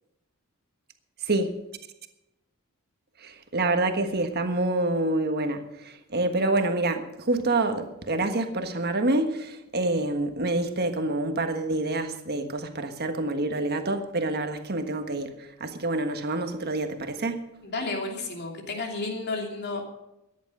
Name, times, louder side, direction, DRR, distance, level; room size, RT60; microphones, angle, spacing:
voice 1, 1.2-1.6 3.2-17.4, right 2 dB, 45° right, 1.4 m, -27 dB
voice 2, 17.6-19.9, left 3 dB, 50° left, 2.9 m, -32 dB
14.0 x 10.0 x 6.2 m
head